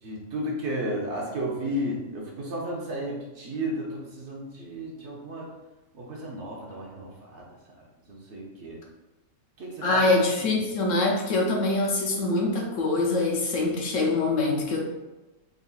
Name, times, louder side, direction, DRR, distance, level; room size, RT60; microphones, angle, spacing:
voice 1, 0.0-5.5 5.9-7.5 7.8-8.8 9.6-10.0 10.4-10.6, equal, 55° right, -2 dB, 1.0 m, -33 dB
voice 2, 9.8-14.8, left 2 dB, 65° left, -1 dB, 1.0 m, -24 dB
4.1 x 3.8 x 2.3 m, 1.1 s
omnidirectional pair, 1.5 m